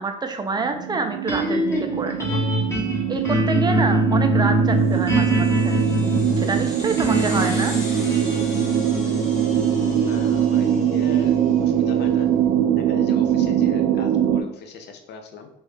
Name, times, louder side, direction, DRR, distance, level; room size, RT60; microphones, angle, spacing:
voice 1, 0.0-2.4 3.1-5.8 6.4-7.8, right 4 dB, 20° right, 5 dB, 0.6 m, -27 dB
sound 1, 0.6-14.4, right 10 dB, 70° right, 0.4 m, -22 dB
sound 2, 1.3-13.6, equal, 15° left, 1.0 m, -25 dB
sound 3, 4.9-11.7, left 1 dB, 35° left, 1.4 m, -39 dB
voice 2, 10.0-12.3 12.8-15.5, left 5 dB, 55° left, 5 dB, 0.6 m, -39 dB
3.1 x 2.7 x 3.2 m, 0.78 s
hypercardioid pair, 70°, 21 cm